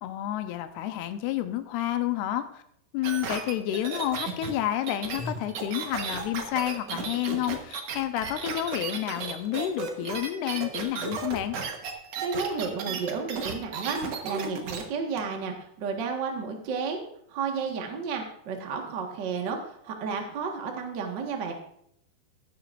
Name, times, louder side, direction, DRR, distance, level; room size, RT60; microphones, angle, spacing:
voice 1, 0.0-2.6 2.9-11.6, left 12 dB, 85° left, 8 dB, 2.7 m, -30 dB
sound 1, 3.0-14.8 15.2-15.3, right 5 dB, 65° right, 1.6 m, -34 dB
voice 2, 12.2-17.0 17.3-21.5, right 5 dB, 85° right, 2 dB, 0.9 m, -32 dB
15.0 x 10.5 x 2.5 m, 0.71 s
omnidirectional pair, 4.7 m